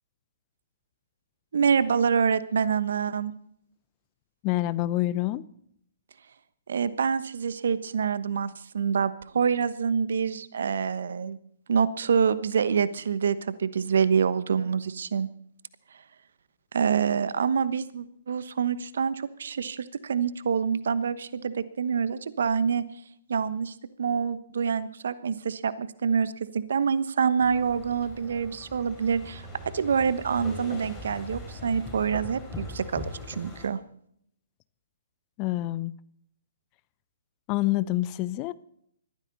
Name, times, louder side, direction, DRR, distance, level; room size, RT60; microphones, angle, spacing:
voice 1, 1.5-3.3 6.7-11.4 11.7-15.3 16.7-22.8 23.3-29.5 29.7-33.8, right 6 dB, 65° right, 15 dB, 1.1 m, -26 dB
voice 2, 4.4-5.5 35.4-35.9 37.5-38.5, left 16 dB, 30° left, 17 dB, 0.7 m, -27 dB
sound 1, 27.4-33.7, left 2 dB, 10° left, 5.3 m, -41 dB
21.0 x 14.5 x 4.1 m, 0.69 s
figure-of-eight pair, 130°, 0 cm